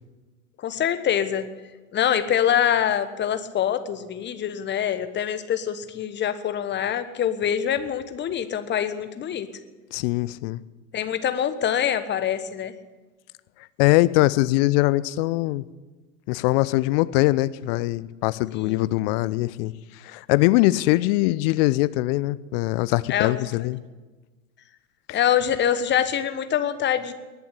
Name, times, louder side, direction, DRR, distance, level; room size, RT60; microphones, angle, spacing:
voice 1, 0.6-1.5 1.9-9.5 10.9-12.7 18.5-18.8 23.1-23.7 25.1-27.1, left 9 dB, 25° left, 11 dB, 1.2 m, -25 dB
voice 2, 9.9-10.6 13.8-15.6 16.3-19.7 20.0-23.8 25.1-25.2, left 19 dB, 45° left, 17 dB, 0.6 m, -22 dB
20.5 x 7.1 x 10.0 m, 1.3 s
figure-of-eight pair, 85°, 41 cm